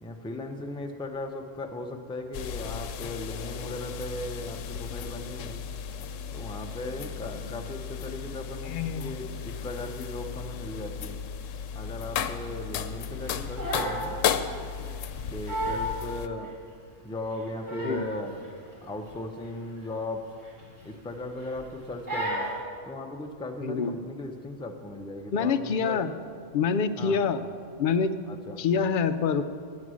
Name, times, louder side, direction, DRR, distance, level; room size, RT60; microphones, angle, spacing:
voice 1, 0.0-5.6 6.3-11.2 11.7-14.2 15.3-16.5 17.0-18.4 18.8-20.2 20.8-22.5 22.8-26.1 27.0-27.2 28.3-28.6, left 2 dB, 5° left, 4 dB, 0.4 m, -37 dB
sound 1, 2.3-16.3, left 7 dB, 90° left, 0.9 m, -35 dB
voice 2, 8.6-9.1 17.8-18.1 23.6-23.9 25.3-26.1 26.5-27.4 27.8-28.1 28.6-29.4, left 6 dB, 60° left, 10 dB, 0.5 m, -26 dB
Crying sobbing, 13.2-14.1 14.4-14.7 15.1-15.2 15.5-15.9 16.4-16.5 17.3-18.2 18.4-18.7 19.0-19.2 19.5-19.7 20.5-21.1 21.4-21.7 22.1-22.6, right 1 dB, 60° right, 2.9 m, -32 dB
9.6 x 8.4 x 6.2 m, 2.2 s
omnidirectional pair, 1.3 m